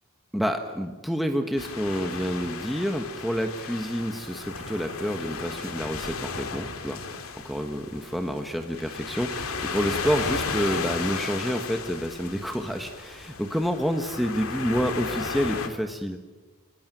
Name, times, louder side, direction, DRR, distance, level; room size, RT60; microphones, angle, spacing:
voice 1, 0.3-16.2, equal, ahead, 4 dB, 1.3 m, -28 dB
sound 1, 1.6-15.7, left 4 dB, 70° left, 2.6 m, -34 dB
28.0 x 20.0 x 9.1 m, 1.2 s
head